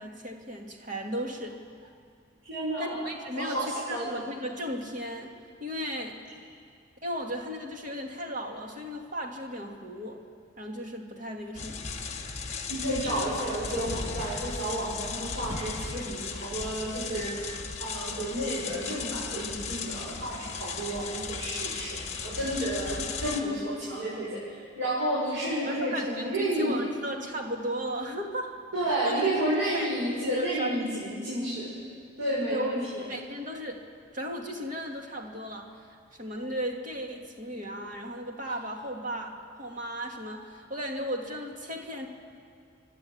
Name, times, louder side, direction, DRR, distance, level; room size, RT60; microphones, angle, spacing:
voice 1, 0.0-1.6 2.8-5.3 5.6-6.2 7.0-10.2 10.6-11.9 25.7-28.5 29.0-29.2 29.7-29.9 30.2-31.1 32.5-32.7 32.9-33.8 34.1-35.7 36.2-42.1, equal, 40° right, 1 dB, 2.4 m, -35 dB
voice 2, 2.4-3.0 3.3-4.2 12.7-22.0 22.2-26.8 28.7-31.7 32.2-33.1, right 1 dB, 90° right, -9 dB, 7.2 m, -31 dB
sound 1, 11.5-23.4, left 5 dB, 35° left, 1.5 m, -36 dB
30.0 x 12.0 x 8.8 m, 2.2 s
head